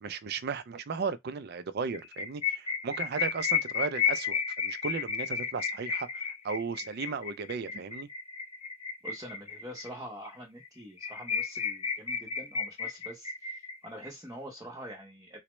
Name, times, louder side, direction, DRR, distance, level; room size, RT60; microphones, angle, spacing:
voice 1, 0.0-8.1, right 5 dB, 45° right, 0.4 m, -35 dB
sound 1, 1.9-9.9 10.3-10.4 10.6-10.7 11.0-14.1, left 6 dB, 25° left, 0.4 m, -32 dB
voice 2, 9.0-15.4, equal, 15° right, 0.7 m, -45 dB
4.1 x 2.0 x 3.0 m
head